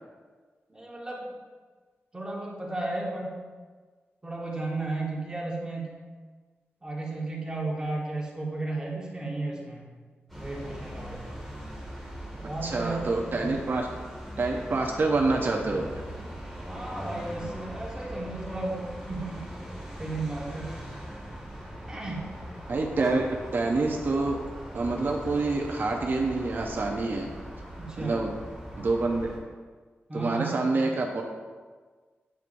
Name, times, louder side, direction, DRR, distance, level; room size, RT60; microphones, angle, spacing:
voice 1, 0.7-1.3 2.1-3.4 4.2-5.9 6.8-9.9 10.4-11.3 12.3-13.6 16.7-19.5 20.0-20.8 21.9-22.3 27.8-28.3 30.1-30.6, right 2 dB, 15° right, -4 dB, 1.1 m, -34 dB
sound 1, 10.3-29.4, equal, 5° left, 1.4 m, -40 dB
voice 2, 12.6-13.9 14.4-16.0 22.7-23.2 23.5-24.4 24.7-27.3 28.0-28.3 28.8-29.3 30.1-31.2, right 3 dB, 50° right, 1 dB, 0.5 m, -27 dB
8.3 x 4.6 x 2.5 m, 1.4 s
wide cardioid pair, 165°, 4 cm